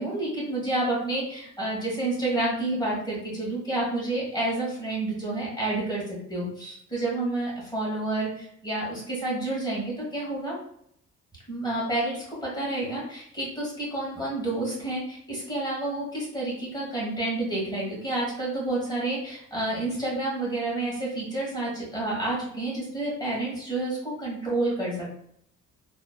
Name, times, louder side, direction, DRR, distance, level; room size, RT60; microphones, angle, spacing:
voice 1, 0.0-6.0 6.3-10.6 11.5-25.2, right 2 dB, 15° left, -6 dB, 1.5 m, -29 dB
2.9 x 2.1 x 2.2 m, 0.70 s
cardioid pair, 90°, 30 cm